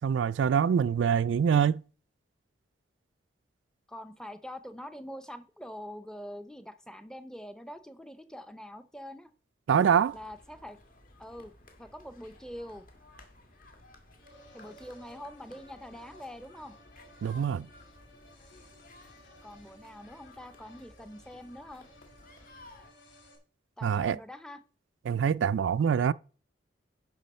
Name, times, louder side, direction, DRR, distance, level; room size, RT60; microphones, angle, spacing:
voice 1, 0.0-1.8 9.7-10.2 17.2-17.7 23.8-24.2 25.1-26.1, right 7 dB, 75° right, 0.3 m, -25 dB
voice 2, 3.9-9.3 10.1-10.8 11.2-11.5 11.8-12.9 14.5-16.7 19.4-21.8 23.8-24.6, equal, 5° left, 0.6 m, -44 dB
sound 1, 9.9-22.9, left 1 dB, 45° left, 1.9 m, -56 dB
sound 2, 14.2-23.4, left 1 dB, 80° left, 3.0 m, -57 dB
10.5 x 6.1 x 4.2 m
head